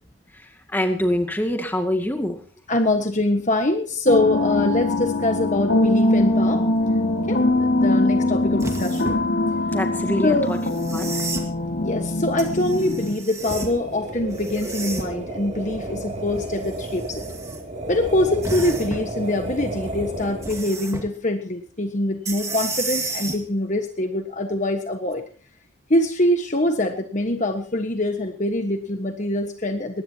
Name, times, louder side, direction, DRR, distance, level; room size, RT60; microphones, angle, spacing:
voice 1, 0.3-2.4 9.7-10.6 10.9-11.1, left 1 dB, 10° left, 4 dB, 2.3 m, -25 dB
voice 2, 2.7-6.7 7.3-9.1 10.2-10.5 11.8-17.3 17.9-25.2 25.9-30.0, left 1 dB, 40° left, 5 dB, 1.4 m, -24 dB
sound 1, 4.1-13.1, left 2 dB, 60° left, 3.1 m, -22 dB
sound 2, 8.6-9.3 10.6-11.5 12.4-13.8 14.3-15.2 16.4-17.6 18.4-19.1 20.4-21.1 22.3-23.4 25.1-25.2, right 3 dB, 15° right, 2.2 m, -32 dB
sound 3, 13.3-20.7, right 2 dB, 35° right, 2.9 m, -32 dB
21.0 x 18.5 x 2.9 m, 0.39 s
head